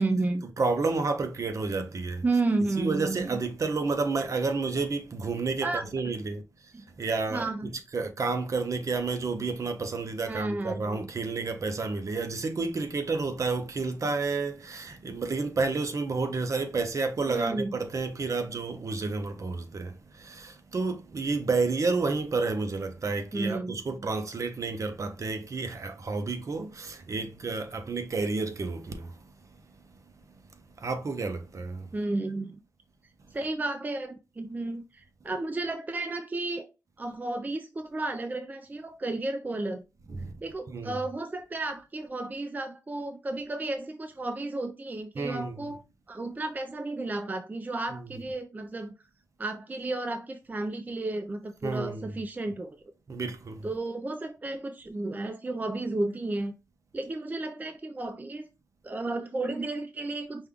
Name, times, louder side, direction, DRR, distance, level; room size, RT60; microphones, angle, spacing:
voice 1, 0.0-0.4 2.2-3.4 5.6-5.8 6.7-6.9 7.3-7.7 10.3-11.1 17.3-17.8 23.3-24.0 31.9-32.6 33.3-36.7 37.0-39.8 40.4-45.8 46.1-48.9 49.4-52.8 53.6-56.5 56.9-58.5 58.8-60.5, right 2 dB, 25° right, 0.4 m, -32 dB
voice 2, 0.6-2.2 2.8-30.0 30.3-30.4 30.8-31.9 40.1-40.3 40.7-41.0 45.2-45.8 47.9-48.1 51.6-52.1 53.1-53.7, right 3 dB, 60° right, 0.7 m, -31 dB
5.2 x 2.3 x 3.6 m
wide cardioid pair, 110°, 6 cm